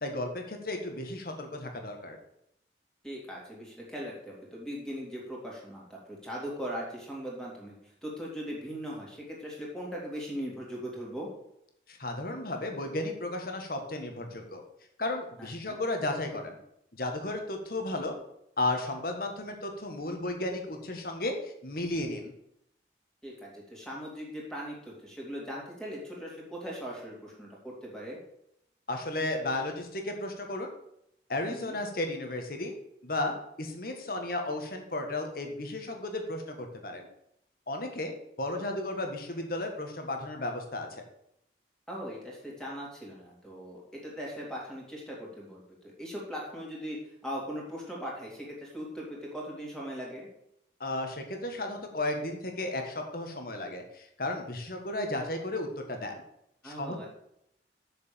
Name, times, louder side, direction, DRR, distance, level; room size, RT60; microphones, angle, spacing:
voice 1, 0.0-2.2 11.9-14.6 15.0-16.6 16.9-18.1 18.6-22.3 28.9-30.7 31.3-32.7 33.0-37.1 37.7-38.1 38.4-40.9 50.8-56.2 56.6-57.1, left 2 dB, 55° left, 4 dB, 1.7 m, -34 dB
voice 2, 3.0-7.8 8.0-11.3 15.4-15.8 23.2-28.2 31.5-31.8 41.9-47.0 47.2-50.3 56.6-57.1, equal, 5° left, -4 dB, 2.8 m, -39 dB
7.2 x 6.7 x 7.0 m, 0.76 s
head